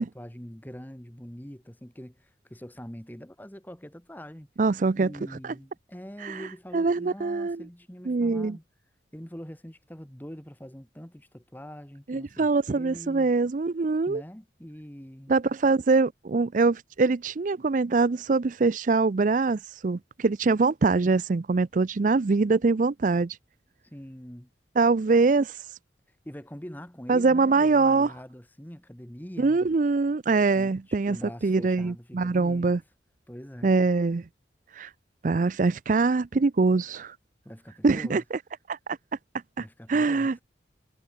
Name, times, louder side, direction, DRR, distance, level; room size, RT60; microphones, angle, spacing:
voice 1, 0.0-4.5 4.9-8.6 9.1-13.3 14.1-15.3 23.8-24.5 26.3-29.6 30.5-30.8 31.1-32.7 33.3-33.8 37.5-38.2 39.6-40.4, equal, 10° left, 1.7 m, -43 dB
voice 2, 4.6-5.1 5.4-5.5 6.2-6.5 6.7-7.6 8.1-8.6 12.1-14.2 15.3-23.4 24.8-25.6 27.1-28.1 29.4-31.2 31.4-32.8 33.6-34.2 34.7-34.9 35.2-37.2 37.8-38.4 38.7-39.0 39.6-40.4, right 3 dB, 45° right, 0.4 m, -23 dB
head